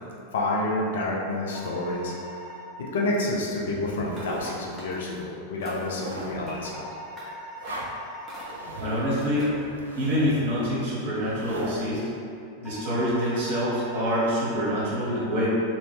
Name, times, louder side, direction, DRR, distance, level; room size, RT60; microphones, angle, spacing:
voice 1, 0.3-2.1 2.8-6.9, left 2 dB, 60° left, -3 dB, 0.5 m, -29 dB
sound 1, 1.5-2.6 6.6-8.6 12.6-14.6, equal, 15° left, 0.7 m, -41 dB
sound 2, 3.7-4.7 5.2-5.3 5.7-6.5 7.6-7.9 8.3-11.8, right 2 dB, 70° right, 0.4 m, -39 dB
sound 3, 4.1-4.4 4.8-5.2 5.6-6.0 6.4-6.8 7.2-7.3 7.6-7.9 8.3-8.7 9.2-9.7, equal, 5° right, 1.0 m, -42 dB
voice 2, 8.8-9.5 9.9-12.1 12.6-15.5, equal, 50° right, -8 dB, 1.2 m, -26 dB
2.8 x 2.6 x 3.4 m, 2.5 s
figure-of-eight pair, 90°, 0 cm